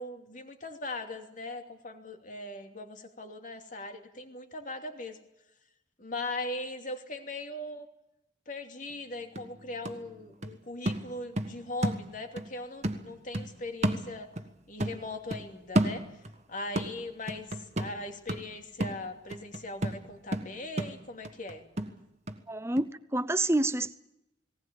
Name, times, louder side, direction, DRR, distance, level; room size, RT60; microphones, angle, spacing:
voice 1, 0.0-5.2 6.0-7.9 8.5-14.3 14.7-16.0 16.5-21.6, left 2 dB, 45° left, 2.8 m, -39 dB
sound 1, 8.9-9.0 9.4-12.5 12.8-14.5 14.8-16.4 16.8-22.4 22.8-22.9, right 1 dB, 35° right, 1.6 m, -33 dB
voice 2, 22.5-24.0, right 2 dB, 15° right, 0.8 m, -28 dB
19.0 x 19.0 x 8.8 m
head